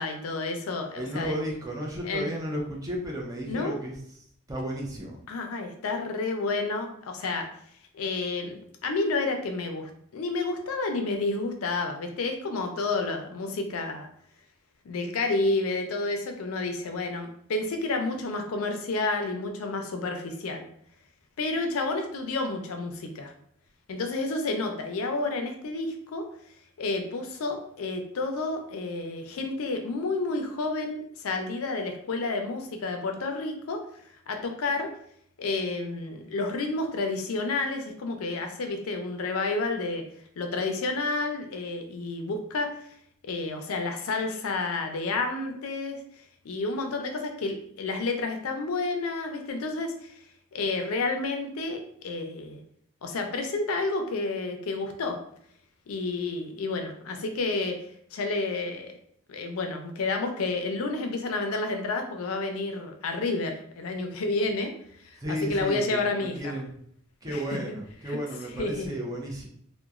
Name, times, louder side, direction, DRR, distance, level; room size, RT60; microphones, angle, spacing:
voice 1, 0.0-1.4 2.0-2.3 3.5-3.8 5.3-7.5 7.9-14.1 14.8-20.7 21.4-23.3 23.9-26.3 26.8-33.8 34.3-34.9 35.4-40.0 40.4-42.7 43.3-46.0 46.4-50.1 50.5-52.6 53.0-55.2 55.9-57.8 58.1-58.9 59.3-64.7 65.0-66.5 67.3-67.6 68.1-68.2 68.6-68.9, left 3 dB, 85° left, 5 dB, 0.4 m, -30 dB
voice 2, 1.0-4.0 4.5-5.2 65.2-66.7 67.2-69.5, equal, 15° right, -2 dB, 0.5 m, -33 dB
2.9 x 2.1 x 2.4 m, 0.66 s
head